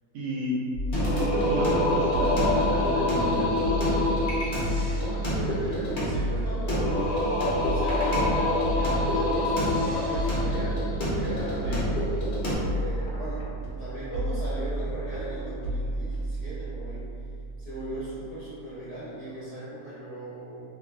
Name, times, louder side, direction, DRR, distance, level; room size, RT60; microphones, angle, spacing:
voice 1, 0.1-0.6 1.2-4.0 11.6-11.9, right 1 dB, 80° right, -4 dB, 1.2 m, -31 dB
sound 1, 0.7-18.3, right 1 dB, 75° left, 1.1 m, -32 dB
Singing, 0.9-12.6, left 1 dB, 55° left, 0.6 m, -27 dB
voice 2, 5.2-10.8 11.1-11.9 12.7-13.5 13.8-17.1 17.6-20.6, right 1 dB, 50° right, -14 dB, 0.4 m, -37 dB
3.1 x 2.3 x 2.3 m, 2.3 s
omnidirectional pair, 1.8 m